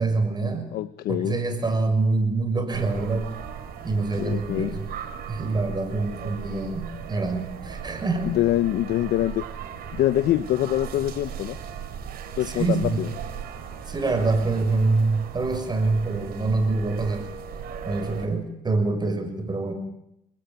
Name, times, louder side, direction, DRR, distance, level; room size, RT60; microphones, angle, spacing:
voice 1, 0.0-0.7 1.1-3.3 3.8-4.9 5.3-8.3 12.5-13.0 13.9-17.3 17.8-19.7, right 3 dB, 25° right, 7 dB, 6.4 m, -25 dB
voice 2, 0.7-1.4 4.2-4.7 8.3-9.4 9.9-11.6 12.4-13.1, left 13 dB, 70° left, 13 dB, 1.0 m, -24 dB
sound 1, 2.7-18.3, right 7 dB, 65° right, 6.2 m, -37 dB
29.5 x 19.5 x 9.3 m, 0.80 s
supercardioid pair, 90°, 17 cm